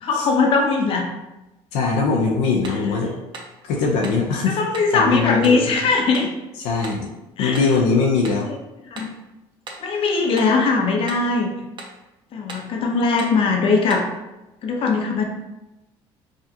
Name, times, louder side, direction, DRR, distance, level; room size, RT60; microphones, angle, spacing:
voice 1, 0.0-1.1 4.5-6.3 7.4-7.6 8.5-8.6 8.9-9.1 9.8-11.5 12.3-14.0 14.6-15.2, left 4 dB, 50° left, 1 dB, 0.8 m, -20 dB
voice 2, 1.7-3.2 3.6-4.6 4.9-5.7 6.6-7.1 7.4-8.5, left 4 dB, 80° left, 0 dB, 0.6 m, -21 dB
sound 1, 2.6-2.9 3.3-3.6 4.0-4.3 4.7-4.9 5.4-5.7 6.1-6.4 6.8-7.1 7.5-7.8 8.2-8.5 8.9-9.2 9.7-9.9 10.4-10.6 11.1-11.3 11.8-12.0 12.5-12.7 13.2-13.4 13.9-14.1, right 3 dB, 40° right, 0.8 m, -38 dB
4.9 x 2.4 x 2.8 m, 0.99 s
supercardioid pair, 95°, 12 cm